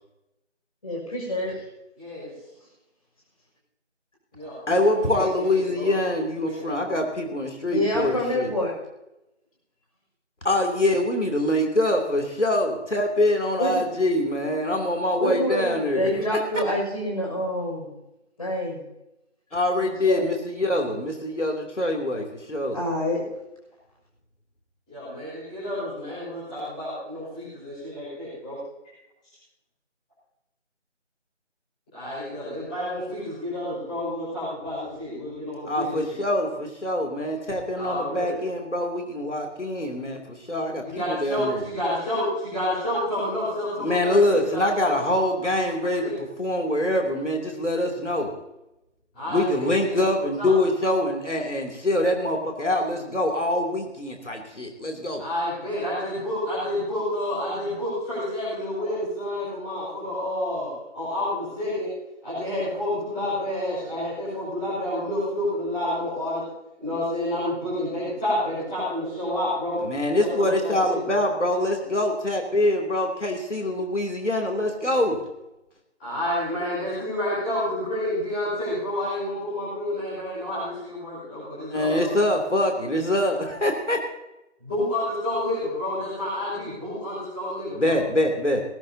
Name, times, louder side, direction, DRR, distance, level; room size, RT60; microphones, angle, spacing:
voice 1, 0.8-1.6 7.7-8.7 13.6-13.7 15.2-17.9 18.4-18.8 19.7-20.3 22.7-23.2, left 1 dB, 30° left, -3 dB, 6.4 m, -27 dB
voice 2, 2.0-2.3 4.3-5.9 6.4-6.5 24.9-28.6 31.9-36.2 37.8-38.3 40.9-45.1 45.6-45.7 46.0-46.1 49.1-50.5 55.2-61.9 62.2-66.4 66.8-69.8 70.2-71.2 76.0-82.1 84.6-88.0, left 1 dB, 5° left, -13 dB, 5.1 m, -29 dB
voice 3, 4.7-8.5 10.4-16.1 19.5-22.8 35.7-41.6 43.8-46.1 46.4-48.3 49.3-55.2 69.8-75.2 81.7-84.0 87.8-88.6, left 1 dB, 75° left, 2 dB, 3.0 m, -24 dB
19.5 x 16.0 x 2.8 m, 0.92 s
figure-of-eight pair, 170°, 36 cm